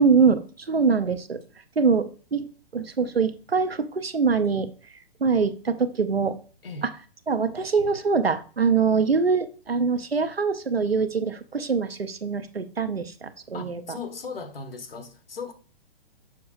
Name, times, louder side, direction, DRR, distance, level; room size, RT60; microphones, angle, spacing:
voice 1, 0.0-1.4 1.8-2.5 2.7-4.7 5.2-6.4 7.3-14.0, right 5 dB, 80° right, 0.8 m, -23 dB
voice 2, 13.5-15.5, left 4 dB, 70° left, 1.2 m, -37 dB
6.9 x 6.1 x 2.5 m
figure-of-eight pair, 120°, 30 cm